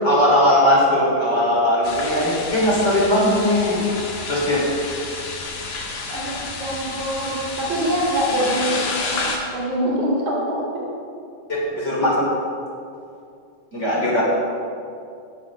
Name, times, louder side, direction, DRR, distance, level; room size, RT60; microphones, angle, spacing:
voice 1, 0.0-3.8 4.3-4.6 11.7-12.3 13.7-14.2, left 1 dB, 20° left, -5 dB, 3.4 m, -19 dB
sound 1, 1.8-9.4, left 3 dB, 75° left, 3.3 m, -30 dB
voice 2, 6.1-10.9, right 1 dB, 60° right, -3 dB, 3.3 m, -24 dB
17.5 x 6.7 x 6.3 m, 2.5 s
omnidirectional pair, 4.1 m